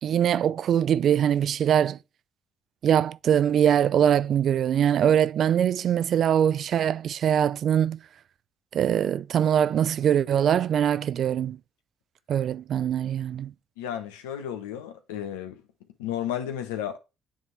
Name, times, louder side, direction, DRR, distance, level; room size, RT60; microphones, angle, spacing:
voice 1, 0.0-2.0 2.8-8.0 8.7-11.6 12.3-13.5, right 9 dB, 60° right, 0.3 m, -22 dB
voice 2, 13.8-15.6 16.0-17.0, left 10 dB, 90° left, 0.9 m, -33 dB
9.3 x 3.6 x 3.2 m
hypercardioid pair, 55°, 0 cm